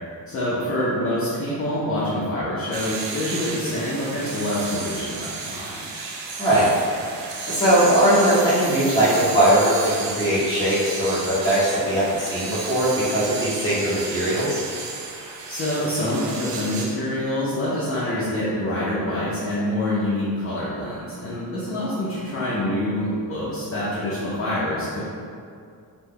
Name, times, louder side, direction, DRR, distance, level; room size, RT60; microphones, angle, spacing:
voice 1, 0.3-5.8 15.5-25.0, left 1 dB, 35° left, -8 dB, 0.5 m, -26 dB
sound 1, 2.7-16.9, right 4 dB, 90° right, 0.5 m, -33 dB
voice 2, 6.4-6.7 7.4-14.6, right 1 dB, 10° left, -11 dB, 0.9 m, -20 dB
3.0 x 2.1 x 3.6 m, 2.3 s
wide cardioid pair, 160°, 42 cm